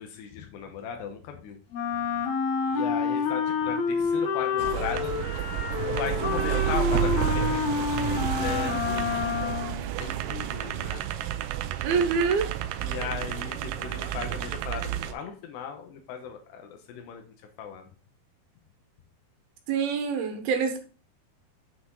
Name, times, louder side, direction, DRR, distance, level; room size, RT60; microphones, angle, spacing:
voice 1, 0.0-1.6 2.7-5.3 5.7-9.2 10.0-11.0 12.8-17.2 17.6-17.9, left 7 dB, 90° left, 4 dB, 3.3 m, -37 dB
Wind instrument woodwind instrument, 1.7-9.9, left 6 dB, 70° left, 1.8 m, -28 dB
sound 1, 4.6-15.1, right 12 dB, 90° right, 1.9 m, -30 dB
voice 2, 11.8-12.5 19.7-20.8, right 5 dB, 70° right, 6 dB, 2.9 m, -25 dB
8.5 x 6.0 x 3.8 m, 0.37 s
omnidirectional pair, 4.7 m